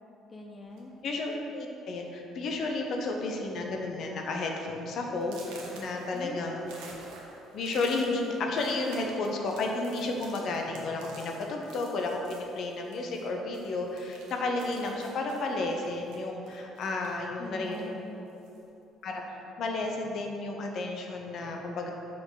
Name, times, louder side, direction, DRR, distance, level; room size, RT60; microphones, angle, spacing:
voice 1, 0.3-0.9 6.1-6.9 17.4-18.3, left 1 dB, 30° left, 1 dB, 0.6 m, -43 dB
sound 1, 0.7-1.0 1.8-1.9 2.3-2.6 2.9-3.3 3.8-3.9 4.4-4.5 5.2-13.3 13.5-17.3 17.6-18.7, right 3 dB, 85° right, 1.1 m, -50 dB
voice 2, 1.0-6.6 7.5-17.9 19.0-21.9, left 2 dB, 60° left, 2 dB, 0.8 m, -32 dB
5.9 x 5.1 x 4.0 m, 2.9 s
cardioid pair, 95°, 0 cm